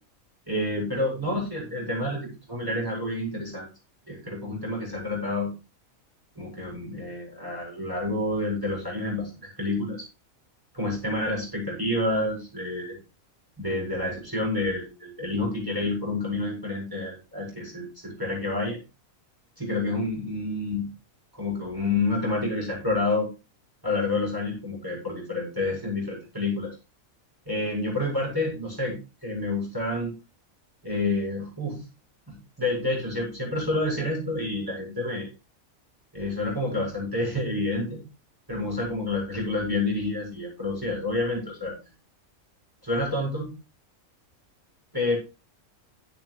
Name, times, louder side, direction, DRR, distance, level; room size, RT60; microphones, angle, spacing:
voice 1, 0.5-3.7 4.1-5.5 6.4-10.0 10.7-13.0 13.6-18.8 19.6-20.9 21.3-23.3 23.8-26.7 27.5-30.1 30.8-31.8 32.3-35.3 36.1-38.0 38.5-41.7 42.8-43.5 44.9-45.2, left 2 dB, 15° right, -4 dB, 7.6 m, -29 dB
16.0 x 8.2 x 3.3 m, 0.30 s
omnidirectional pair, 1.4 m